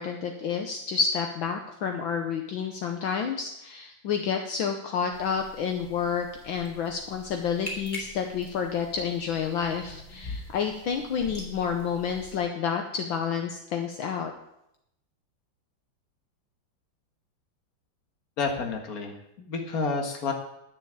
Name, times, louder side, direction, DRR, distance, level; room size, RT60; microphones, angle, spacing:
voice 1, 0.0-14.3, left 6 dB, 70° left, 4 dB, 1.6 m, -29 dB
sound 1, 5.1-12.4, left 1 dB, 20° left, 3.6 m, -43 dB
voice 2, 18.4-20.3, left 4 dB, 45° left, 3 dB, 1.9 m, -30 dB
11.5 x 6.6 x 8.7 m, 0.80 s
omnidirectional pair, 2.3 m